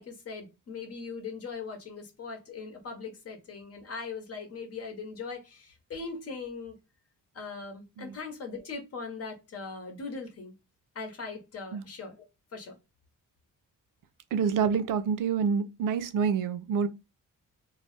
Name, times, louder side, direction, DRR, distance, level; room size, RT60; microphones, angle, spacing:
voice 1, 0.0-6.7 7.3-10.5 10.9-12.1 12.5-12.8, left 4 dB, 45° left, 0.9 m, -40 dB
voice 2, 14.3-16.9, right 6 dB, 70° right, 0.5 m, -27 dB
2.3 x 2.1 x 3.7 m
wide cardioid pair, 170°, 33 cm